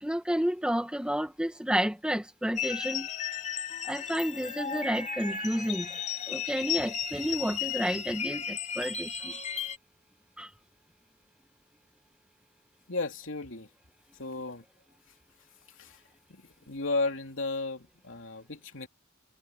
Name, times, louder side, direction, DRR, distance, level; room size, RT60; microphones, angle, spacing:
voice 1, 0.0-3.1 3.8-6.0 6.3-9.3 10.4-10.5, equal, 5° right, 1.4 m, -31 dB
sound 1, 2.5-9.8, left 7 dB, 35° left, 2.7 m, -35 dB
voice 2, 12.9-13.7 14.1-14.6 15.7-16.0 16.3-18.9, left 3 dB, 65° left, 3.3 m, -34 dB
head